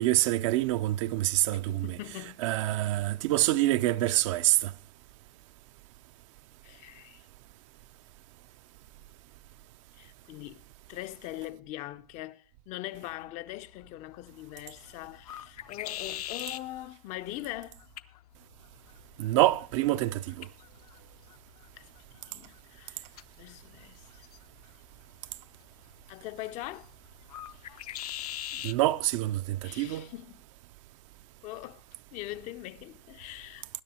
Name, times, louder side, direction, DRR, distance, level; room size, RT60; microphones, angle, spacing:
voice 1, 0.0-1.9 2.4-4.7 19.2-20.5 28.6-30.1, right 16 dB, 55° right, 0.4 m, -26 dB
voice 2, 1.5-2.4 6.6-7.2 9.9-10.6 10.9-17.8 21.7-21.9 22.3-23.1 23.4-24.1 26.1-26.9 29.6-30.4 31.4-31.8 32.1-33.7, left 16 dB, 40° left, 0.5 m, -42 dB
sound 1, 13.5-28.8, left 12 dB, 75° left, 0.6 m, -45 dB
20.5 x 9.5 x 2.8 m
hypercardioid pair, 110°, 19 cm